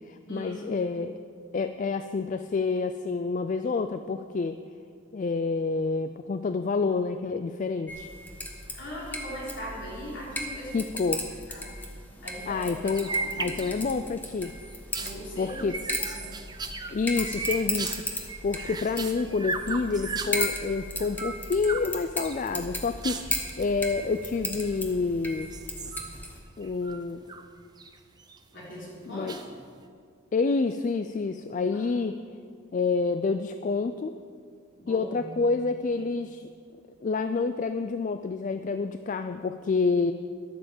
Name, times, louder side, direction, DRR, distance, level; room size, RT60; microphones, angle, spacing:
voice 1, 0.1-1.2 1.5-4.6 5.1-8.1 10.7-11.3 12.5-13.1 13.4-14.5 15.4-15.8 16.9-25.5 26.6-27.2 29.1-29.4 30.3-32.1 32.7-34.1 34.9-36.5 37.0-40.1, left 4 dB, 40° left, 9 dB, 0.3 m, -28 dB
sound 1, 7.9-26.4, left 1 dB, 10° left, 1.1 m, -36 dB
voice 2, 8.7-10.8 11.5-11.7 12.2-12.7 13.0-13.5 15.0-15.6 16.1-16.4 28.5-29.3 31.7-32.0 34.8-35.3, equal, 60° left, -5 dB, 3.9 m, -40 dB
sound 2, 12.8-14.0 14.4-20.6 21.0-21.9 22.2-23.7 24.5-25.1 25.4-27.5 27.8-28.4 29.3-29.8, right 4 dB, 20° right, 0.6 m, -36 dB
11.5 x 8.6 x 7.1 m, 2.2 s
head